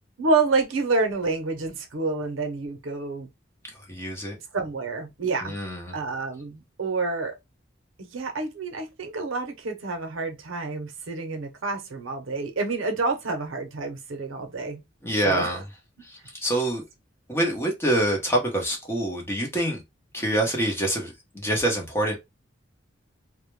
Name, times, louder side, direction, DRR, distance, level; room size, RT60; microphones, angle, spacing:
voice 1, 0.2-3.3 4.5-5.6 5.9-7.4 8.0-14.8 15.2-15.5, right 3 dB, 85° right, 0.7 m, -28 dB
voice 2, 3.9-4.4 5.4-6.0 15.0-15.6 16.0-16.8 17.3-19.8 20.1-22.2, right 1 dB, 15° left, 0.7 m, -26 dB
2.2 x 2.0 x 3.0 m
head